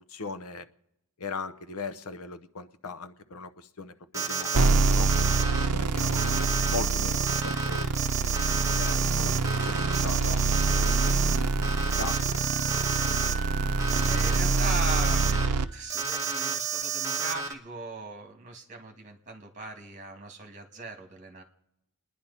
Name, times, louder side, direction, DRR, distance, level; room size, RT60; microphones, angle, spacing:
voice 1, 0.1-0.7 1.2-5.1 5.5-6.4 6.7-7.9 8.3-9.3 9.6-10.4 10.7-11.7 12.0-12.3 12.6-12.8 13.0-13.2, left 4 dB, 75° left, 13 dB, 0.8 m, -39 dB
Alarm, 4.1-5.7 6.0-11.4 11.6-13.3 13.8-15.5 15.9-17.5, right 6 dB, 15° right, 1.5 m, -31 dB
sound 1, 4.5-15.6, right 3 dB, 85° right, 0.6 m, -26 dB
Wind instrument woodwind instrument, 9.8-17.2, right 6 dB, 55° left, 4.9 m, -45 dB
voice 2, 14.1-15.3 15.7-21.4, right 2 dB, 35° right, 4 dB, 2.0 m, -39 dB
29.0 x 10.5 x 4.2 m, 0.84 s
head